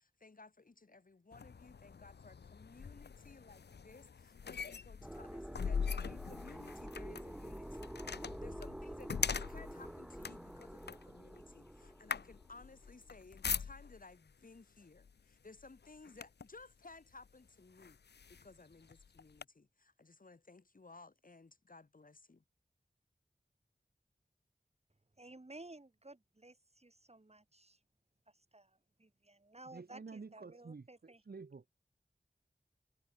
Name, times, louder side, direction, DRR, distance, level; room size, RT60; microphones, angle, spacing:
voice 1, 0.0-18.0 18.3-22.4, left 3 dB, 55° left, 1.5 m, -58 dB
sound 1, 1.3-14.1 15.0-15.2 15.6-16.6 17.2-17.3 17.8-19.4, left 6 dB, 85° left, 0.6 m, -42 dB
sound 2, 5.0-12.9, equal, 5° right, 0.5 m, -48 dB
voice 2, 25.2-27.8 28.3-31.2, right 2 dB, 40° right, 5.1 m, -56 dB
voice 3, 29.7-31.6, right 4 dB, 65° right, 1.1 m, -50 dB
wide cardioid pair, 60°, 17 cm